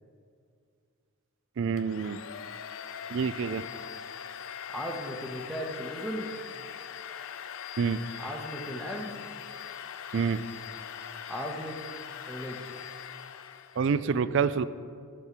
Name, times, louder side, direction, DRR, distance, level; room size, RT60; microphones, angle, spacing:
voice 1, 1.6-2.2 3.1-3.6 7.8-8.0 10.1-10.4 13.8-14.7, right 6 dB, 55° right, 15 dB, 0.3 m, -27 dB
Domestic sounds home sounds, 1.8-13.9, left 8 dB, 65° left, 0.4 m, -41 dB
voice 2, 4.7-6.3 8.2-9.1 11.3-11.8 12.3-12.7, equal, ahead, 0 dB, 1.0 m, -36 dB
11.5 x 4.5 x 8.0 m, 2.2 s
head